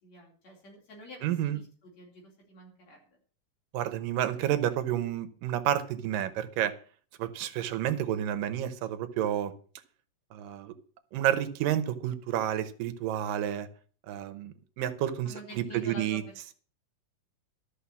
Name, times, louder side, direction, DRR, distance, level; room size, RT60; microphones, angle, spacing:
voice 1, 0.0-3.2 15.2-16.5, equal, 55° left, 0 dB, 5.2 m, -49 dB
voice 2, 1.2-1.6 3.7-6.7 7.2-9.5 10.3-10.8 11.1-13.7 14.1-16.2, right 11 dB, 85° right, 11 dB, 2.6 m, -30 dB
13.0 x 6.6 x 8.3 m, 0.43 s
omnidirectional pair, 3.8 m